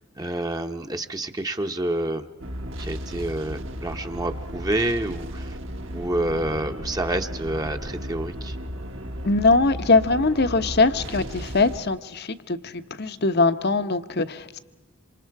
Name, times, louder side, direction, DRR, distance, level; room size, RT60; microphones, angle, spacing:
voice 1, 0.2-2.2 2.8-5.6 5.9-8.6, right 1 dB, 20° right, 6 dB, 1.0 m, -28 dB
sound 1, 2.4-11.8, equal, 65° right, 1.8 m, -35 dB
voice 2, 9.2-14.6, left 3 dB, 50° left, 11 dB, 1.0 m, -22 dB
27.0 x 26.5 x 4.8 m, 1.1 s
head